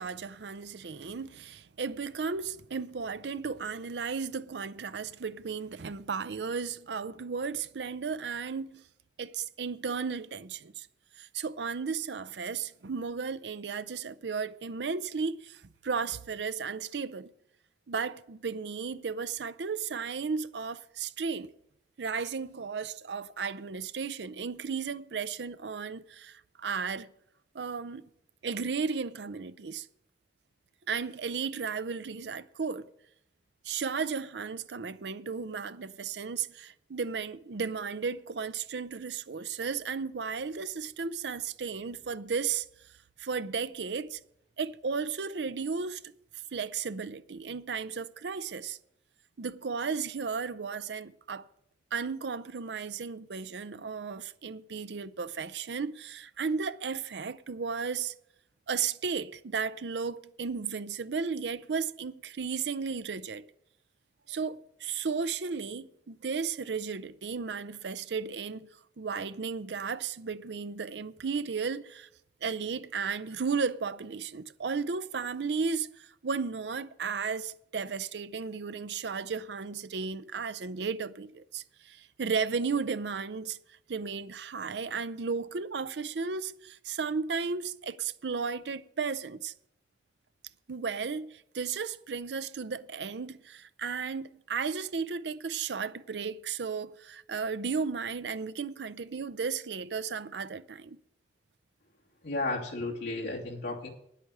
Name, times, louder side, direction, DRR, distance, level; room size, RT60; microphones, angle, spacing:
voice 1, 0.0-8.8 9.2-10.9 11.2-17.3 17.9-21.5 22.0-27.1 27.5-28.0 28.4-29.9 30.9-32.9 33.6-42.7 43.2-44.2 44.6-46.1 46.5-48.8 49.4-51.5 51.9-58.1 58.7-63.5 64.3-68.7 69.0-72.1 72.4-83.6 83.9-89.5 90.7-101.0, right 5 dB, 80° right, 0.6 m, -34 dB
voice 2, 102.2-103.9, left 2 dB, 80° left, 2.7 m, -33 dB
9.9 x 8.3 x 7.8 m
head